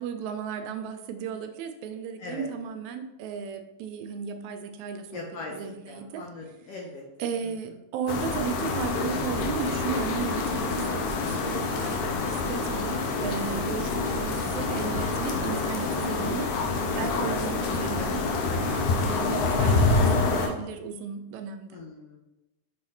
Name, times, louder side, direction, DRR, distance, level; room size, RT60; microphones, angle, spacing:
voice 1, 0.0-5.2 5.5-6.2 7.2-16.7 17.0-21.8, right 7 dB, 80° right, 7 dB, 1.8 m, -35 dB
voice 2, 5.1-7.0 10.6-11.0 17.0-17.2 21.7-22.2, left 3 dB, 70° left, -1 dB, 1.5 m, -40 dB
sound 1, 8.1-20.5, left 3 dB, 90° left, 2.3 m, -27 dB
6.3 x 3.9 x 4.3 m, 0.95 s
omnidirectional pair, 3.4 m